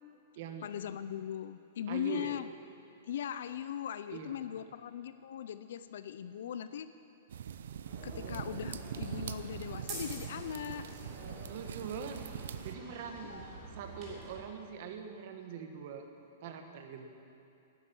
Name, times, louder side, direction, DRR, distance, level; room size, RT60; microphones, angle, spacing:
voice 1, 0.6-2.5 3.1-6.9 8.0-11.0 13.2-13.6, left 9 dB, 65° left, 12 dB, 0.5 m, -39 dB
voice 2, 1.9-2.3 4.1-4.6 6.4-6.7 11.5-12.2 12.6-13.5 13.7-16.1 16.4-17.1, right 7 dB, 45° right, 5 dB, 1.3 m, -43 dB
sound 1, 7.3-12.8, right 8 dB, 75° right, 0.6 m, -43 dB
sound 2, 7.8-14.4, right 3 dB, 25° right, 3.4 m, -47 dB
12.5 x 10.0 x 8.7 m, 2.8 s
supercardioid pair, 170°, 0 cm